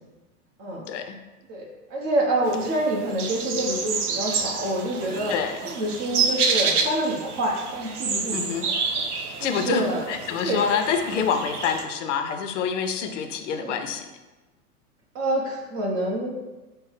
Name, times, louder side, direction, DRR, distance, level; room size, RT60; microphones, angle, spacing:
voice 1, 0.9-1.2 5.3-5.6 8.3-8.7 9.4-14.1, left 6 dB, 55° left, 7 dB, 0.5 m, -27 dB
voice 2, 1.5-5.3 5.6-8.4 9.4-10.1 10.4-10.6 13.6-13.8 15.1-16.3, right 1 dB, 30° right, 0 dB, 0.9 m, -27 dB
sound 1, 2.5-11.8, right 5 dB, 70° right, 0.6 m, -29 dB
5.3 x 2.1 x 3.3 m, 1.1 s
figure-of-eight pair, 100°, 46 cm